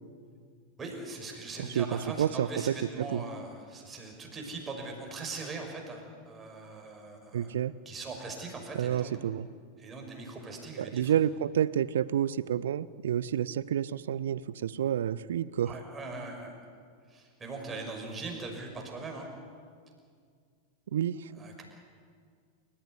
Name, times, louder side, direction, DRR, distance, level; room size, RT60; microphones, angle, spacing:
voice 1, 0.8-7.5 7.9-9.2 9.8-11.2 15.7-16.5 17.1-19.3 21.3-21.6, right 3 dB, 20° right, 2 dB, 5.9 m, -41 dB
voice 2, 1.8-2.8 3.1-3.2 7.3-7.7 8.7-9.5 10.8-15.7 20.9-21.3, right 10 dB, 60° right, 20 dB, 0.7 m, -29 dB
28.5 x 15.0 x 9.7 m, 2.1 s
figure-of-eight pair, 90°, 0 cm